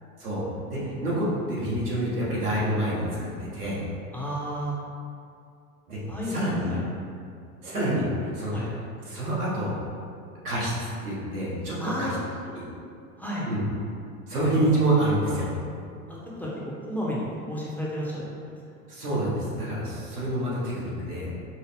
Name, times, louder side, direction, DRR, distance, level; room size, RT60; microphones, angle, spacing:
voice 1, 0.7-3.8 5.9-6.0 6.2-6.7 7.6-8.5 9.0-9.7 10.4-12.1 12.5-12.6 13.5-13.6 14.3-15.5 18.9-21.3, right 1 dB, 85° right, -7 dB, 1.2 m, -27 dB
voice 2, 4.1-4.8 6.1-6.4 6.7-6.8 8.5-8.7 11.8-12.2 13.2-13.5 16.1-16.5 16.9-18.2, equal, 5° left, -7 dB, 0.6 m, -32 dB
5.0 x 2.0 x 3.4 m, 2.4 s
figure-of-eight pair, 80°, 44 cm